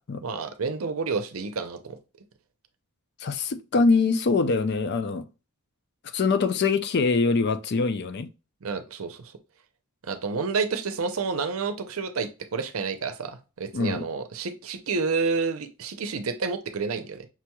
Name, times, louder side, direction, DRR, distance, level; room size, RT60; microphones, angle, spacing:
voice 1, 0.2-2.0 8.6-9.3 10.1-17.3, right 4 dB, 65° right, 0.6 m, -29 dB
voice 2, 3.2-5.3 6.1-8.3 13.7-14.0, left 4 dB, 50° left, 0.4 m, -23 dB
5.9 x 3.0 x 2.3 m
head